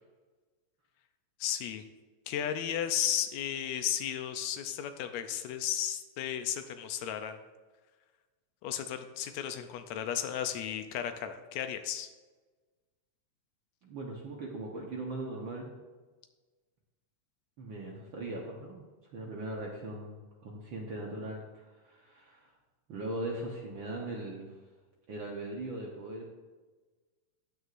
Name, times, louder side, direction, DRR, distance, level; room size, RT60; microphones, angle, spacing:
voice 1, 1.4-1.8 2.3-7.4 8.6-12.1, left 10 dB, 80° left, 7 dB, 1.6 m, -34 dB
voice 2, 13.8-15.8 17.6-18.8 19.1-20.2 20.4-22.5 22.9-24.4 25.1-26.4, right 2 dB, 80° right, -2 dB, 1.1 m, -39 dB
14.5 x 9.5 x 2.6 m, 1.3 s
omnidirectional pair, 3.9 m